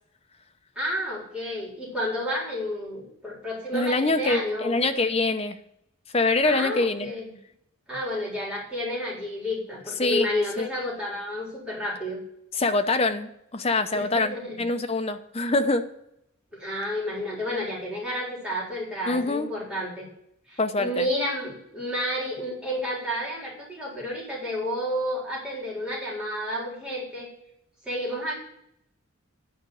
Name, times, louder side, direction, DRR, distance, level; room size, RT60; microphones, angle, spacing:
voice 1, 0.8-4.8 6.4-7.3 7.9-12.2 13.9-14.6 16.5-20.1 20.5-27.3 27.8-28.3, equal, 5° right, -6 dB, 4.1 m, -31 dB
voice 2, 3.7-5.6 6.1-7.1 10.0-10.3 10.6-10.7 12.6-15.9 19.1-19.5 20.6-21.1, left 2 dB, 30° left, 8 dB, 0.7 m, -24 dB
10.0 x 5.2 x 8.0 m, 0.75 s
head